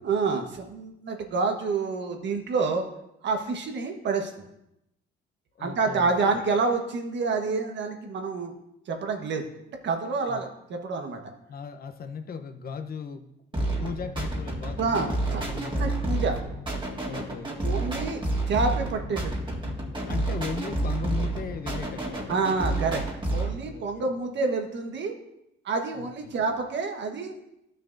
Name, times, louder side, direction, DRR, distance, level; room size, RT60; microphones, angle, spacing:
voice 1, 0.0-2.9 3.2-4.5 5.6-8.5 8.9-9.5 9.8-11.2 14.8-16.4 17.6-19.3 22.3-23.0 23.3-25.1 25.6-27.3, right 4 dB, 65° right, 4 dB, 1.3 m, -28 dB
voice 2, 5.6-6.3 10.3-10.4 11.5-13.2 13.5-16.1 17.1-17.7 20.1-22.4 23.6-24.1 25.9-26.3, left 5 dB, 50° left, 7 dB, 0.9 m, -37 dB
sound 1, 13.5-23.5, right 2 dB, 25° right, 2.0 m, -29 dB
12.5 x 6.5 x 2.6 m, 0.84 s
cardioid pair, 90°, 20 cm